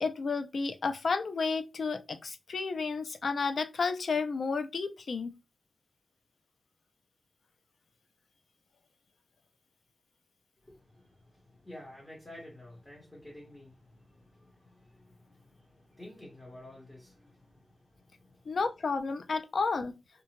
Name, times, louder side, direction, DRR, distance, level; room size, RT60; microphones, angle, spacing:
voice 1, 0.0-5.4 18.5-20.0, left 4 dB, 70° left, 0.3 m, -31 dB
voice 2, 10.6-18.6, left 1 dB, 15° left, 1.0 m, -52 dB
2.7 x 2.1 x 2.9 m
wide cardioid pair, 115°, 0 cm